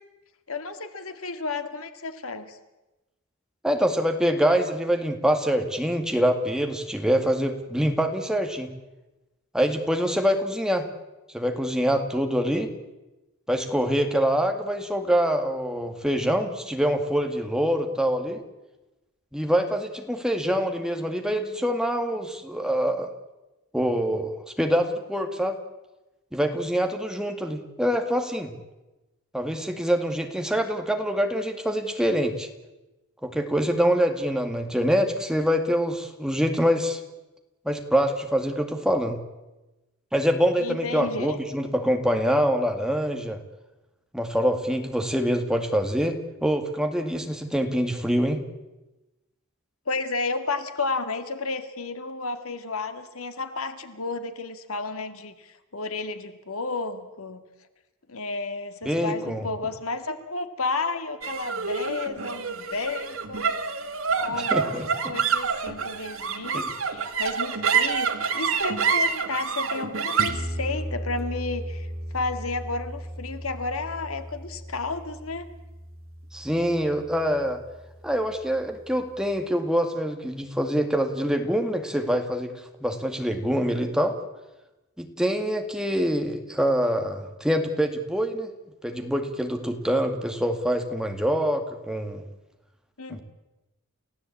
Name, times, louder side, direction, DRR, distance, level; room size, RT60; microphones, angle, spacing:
voice 1, 0.5-2.6 40.6-41.4 49.9-57.4 58.1-63.6 64.2-71.9 72.1-75.4 93.0-93.2, left 3 dB, 75° left, 9 dB, 2.1 m, -32 dB
voice 2, 3.6-8.7 9.5-10.9 11.3-12.7 13.5-18.4 19.3-23.1 23.7-25.6 26.3-28.6 29.3-32.5 33.2-37.0 37.7-39.2 40.1-43.4 44.1-48.4 58.8-59.5 64.5-64.9 66.5-66.7 76.3-77.6 78.0-82.5 82.8-84.2 85.0-88.5 88.8-92.2 93.1-93.2, equal, 5° right, 5 dB, 2.1 m, -25 dB
sound 1, 61.2-77.8, right 5 dB, 70° right, 2.2 m, -29 dB
30.0 x 16.0 x 8.5 m, 1.0 s
head